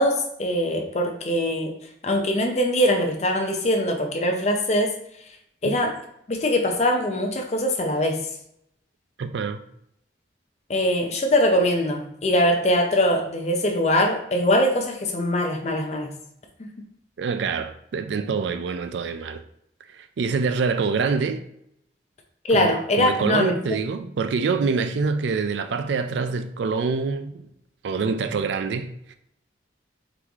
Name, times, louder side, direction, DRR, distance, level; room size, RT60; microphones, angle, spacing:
voice 1, 0.0-1.7 2.0-4.9 5.6-5.9 6.3-8.2 10.7-16.1 22.5-23.5, left 1 dB, 35° left, 0.6 m, -22 dB
voice 2, 9.2-9.6 17.2-19.4 19.9-21.4 22.5-27.5 27.8-29.1, right 5 dB, 70° right, 0.3 m, -26 dB
3.9 x 3.1 x 3.4 m
head